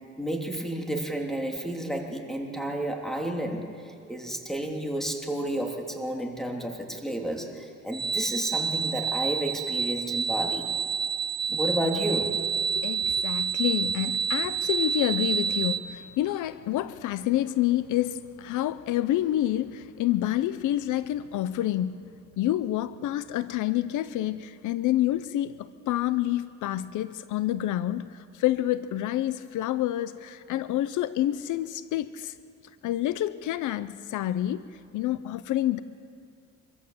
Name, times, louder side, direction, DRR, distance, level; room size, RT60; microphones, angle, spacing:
voice 1, 0.2-10.7 11.5-12.4, right 1 dB, ahead, 3.2 m, -31 dB
sound 1, 7.9-15.8, right 6 dB, 35° right, 1.2 m, -28 dB
voice 2, 12.7-22.1 22.4-32.3 32.8-34.7 34.9-35.8, left 13 dB, 85° left, 0.7 m, -28 dB
25.5 x 15.5 x 7.6 m
cardioid pair, 90°, 30 cm